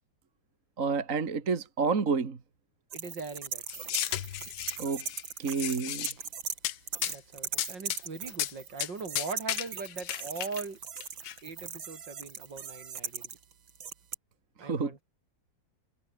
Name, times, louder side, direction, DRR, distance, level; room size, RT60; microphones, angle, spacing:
voice 1, 0.8-2.4 4.8-5.1 5.4-6.1 14.6-15.0, right 5 dB, 45° right, 2.3 m, -29 dB
voice 2, 2.9-4.2 7.1-10.8 11.4-13.3 14.6-15.0, right 4 dB, 65° right, 4.1 m, -41 dB
sound 1, 2.9-6.6 6.9-14.1, right 7 dB, 90° right, 2.7 m, -39 dB
sound 2, 3.7-5.2 5.5-6.1 6.6-6.8 7.0-7.2 7.6-8.0 8.3-8.5 8.8-8.9 9.2-10.6 11.0-11.3, left 13 dB, 90° left, 1.6 m, -34 dB
omnidirectional pair, 2.1 m